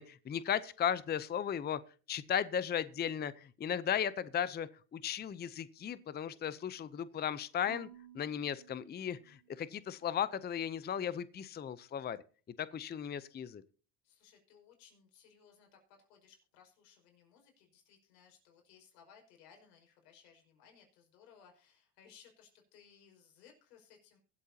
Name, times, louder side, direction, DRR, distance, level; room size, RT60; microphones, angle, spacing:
voice 1, 0.0-1.8 2.1-7.9 8.1-12.2 12.6-13.6, left 9 dB, 20° left, 0.6 m, -36 dB
voice 2, 6.0-6.7 14.0-24.2, left 7 dB, 90° left, 5.2 m, -62 dB
Marimba xylophone / Wood, 7.7-9.9, right 12 dB, 50° right, 2.1 m, -56 dB
23.5 x 8.1 x 2.8 m
supercardioid pair, 95°, 47 cm